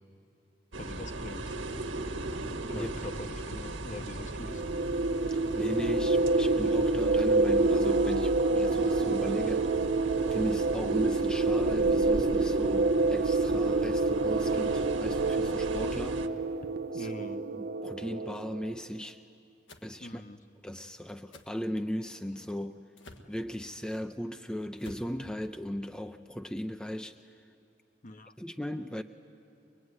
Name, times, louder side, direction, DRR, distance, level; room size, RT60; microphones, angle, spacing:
sound 1, 0.7-16.3, right 2 dB, 80° right, 1.5 m, -38 dB
voice 1, 0.8-1.6 2.7-4.6 16.9-17.4 20.0-20.4 28.0-28.3, left 2 dB, 45° left, 0.9 m, -43 dB
sound 2, 4.4-18.8, right 3 dB, 55° right, 0.5 m, -27 dB
voice 2, 5.3-9.7 10.3-16.2 16.9-19.2 19.8-20.2 20.6-22.8 23.3-27.2 28.4-29.0, equal, 5° left, 0.5 m, -37 dB
sound 3, 19.7-19.9 21.3-21.5 23.0-23.3 24.8-25.1, left 2 dB, 90° left, 1.8 m, -49 dB
23.5 x 22.0 x 9.6 m
head